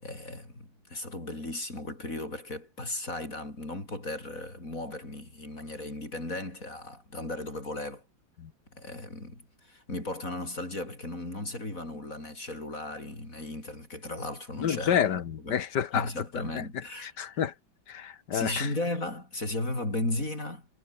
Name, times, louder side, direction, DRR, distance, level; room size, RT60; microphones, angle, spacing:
voice 1, 0.0-8.0 8.7-15.6 15.9-17.1 18.3-20.7, left 2 dB, 40° left, 7.5 m, -36 dB
voice 2, 14.6-16.1 16.3-16.6 17.0-17.5 17.9-18.7, left 9 dB, 60° left, 1.9 m, -29 dB
omnidirectional pair, 2.1 m